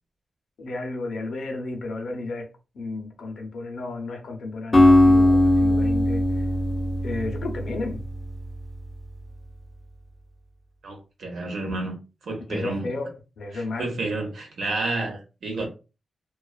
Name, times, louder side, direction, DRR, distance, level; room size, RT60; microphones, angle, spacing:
voice 1, 0.6-2.5 2.7-6.5 7.0-8.0 12.5-13.9, left 3 dB, 70° left, 0.6 m, -33 dB
Acoustic guitar, 4.7-8.8, left 1 dB, 20° left, 0.5 m, -19 dB
voice 2, 10.8-12.0 12.2-12.9 13.5-15.7, right 2 dB, 75° right, 0.8 m, -30 dB
2.3 x 2.3 x 2.3 m
wide cardioid pair, 175°, 0 cm